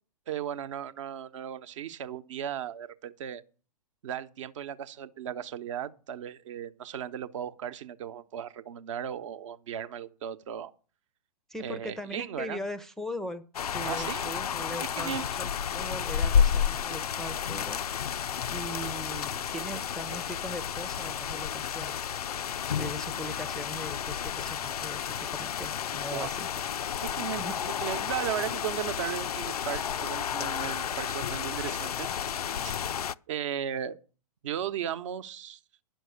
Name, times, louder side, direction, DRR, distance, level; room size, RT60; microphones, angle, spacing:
voice 1, 0.3-3.4 4.0-10.7 11.6-12.6 13.8-14.3 15.0-15.3 26.1-26.3 27.0-27.4 27.8-32.1 32.4-32.7 33.3-34.0 34.4-35.6, right 10 dB, 50° right, 0.9 m, -36 dB
voice 2, 11.5-13.4 13.7-17.8 18.5-21.9 22.8-26.5 27.4-27.6, equal, ahead, 0.6 m, -40 dB
sound 1, 13.5-33.1, left 8 dB, 75° left, 0.4 m, -31 dB
10.5 x 6.2 x 8.3 m
figure-of-eight pair, 115°, 20 cm